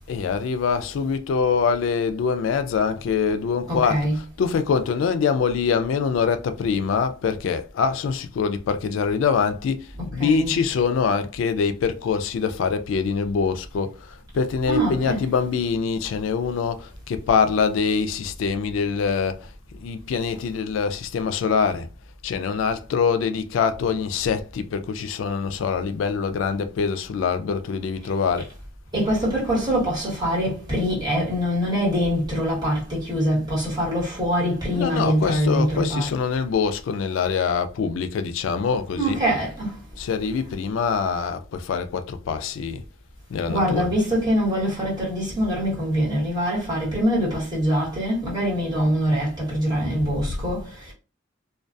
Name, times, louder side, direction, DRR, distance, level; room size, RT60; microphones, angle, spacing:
voice 1, 0.1-19.5 19.8-21.9 22.2-28.5 34.7-39.2 40.0-42.8 43.3-43.9, left 5 dB, 85° left, 0.3 m, -24 dB
voice 2, 3.7-4.2 10.2-10.6 14.6-15.3 28.9-36.1 38.9-39.8 43.5-50.9, equal, 20° right, 1.3 m, -24 dB
2.2 x 2.2 x 2.5 m
head